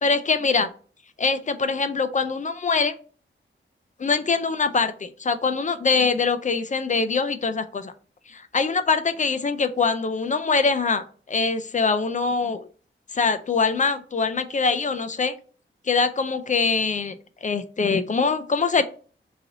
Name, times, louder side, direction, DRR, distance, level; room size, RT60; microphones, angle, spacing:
voice 1, 0.0-0.7 1.2-2.9 4.0-7.9 8.3-12.6 13.1-15.3 15.9-17.2 17.4-18.8, left 4 dB, 35° left, 10 dB, 0.4 m, -23 dB
3.2 x 2.6 x 3.8 m, 0.40 s
wide cardioid pair, 130°, 21 cm